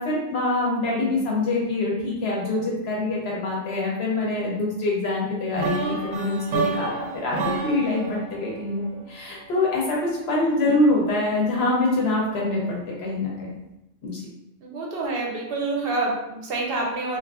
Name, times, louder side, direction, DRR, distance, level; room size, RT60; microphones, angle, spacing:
voice 1, 0.0-13.5 14.0-14.2, left 2 dB, 65° left, -3 dB, 0.8 m, -25 dB
sound 1, 5.6-9.5, right 3 dB, 90° right, 1.0 m, -29 dB
voice 2, 14.6-17.2, right 2 dB, 60° right, -1 dB, 0.7 m, -27 dB
2.7 x 2.4 x 2.2 m, 0.92 s
omnidirectional pair, 1.3 m